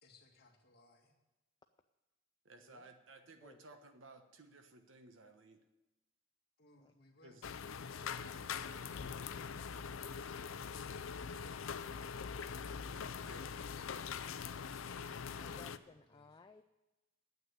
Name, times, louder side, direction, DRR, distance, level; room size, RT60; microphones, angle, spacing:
voice 1, 0.0-1.1 6.6-7.4 7.8-10.6 13.0-14.1 16.0-16.4, left 2 dB, 50° left, 1 dB, 2.0 m, -63 dB
voice 2, 2.4-5.6 7.2-7.4 8.0-8.2 13.3-13.5, right 2 dB, 70° right, 7 dB, 1.2 m, -58 dB
sound 1, 7.4-15.8, left 6 dB, 85° left, 0.5 m, -43 dB
voice 3, 15.4-16.6, left 3 dB, 20° left, 8 dB, 0.4 m, -59 dB
9.4 x 8.0 x 9.6 m, 1.0 s
head